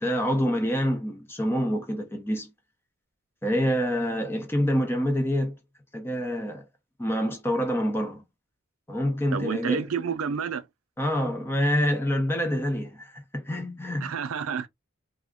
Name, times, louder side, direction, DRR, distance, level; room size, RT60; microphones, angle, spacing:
voice 1, 0.0-2.5 3.4-5.6 5.9-6.7 7.0-8.2 8.9-9.9 11.0-14.1, equal, 10° left, 0.6 m, -26 dB
voice 2, 9.3-10.6 14.0-14.7, right 6 dB, 85° right, 0.5 m, -29 dB
2.5 x 2.0 x 3.5 m
head